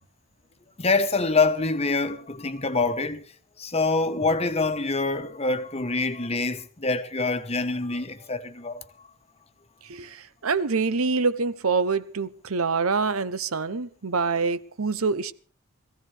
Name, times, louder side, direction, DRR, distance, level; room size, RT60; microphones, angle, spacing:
voice 1, 0.8-3.2 3.6-8.8, left 3 dB, 30° left, 1.1 m, -25 dB
voice 2, 9.8-15.3, right 4 dB, 80° right, 0.9 m, -26 dB
22.5 x 15.5 x 3.4 m
head